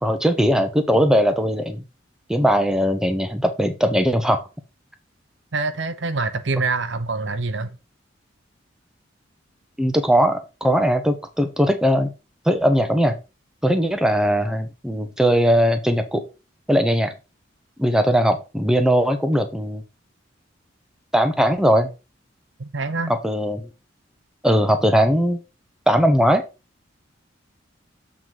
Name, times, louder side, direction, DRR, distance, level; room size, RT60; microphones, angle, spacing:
voice 1, 0.0-1.8 2.3-4.4 9.8-12.1 12.5-13.2 13.6-16.2 16.7-17.1 17.8-19.8 21.1-21.9 23.2-23.7 24.4-25.4 25.9-26.4, equal, 5° right, 0.8 m, -19 dB
voice 2, 5.5-7.8 22.6-23.1, right 3 dB, 70° right, 0.8 m, -25 dB
7.6 x 4.0 x 4.6 m
head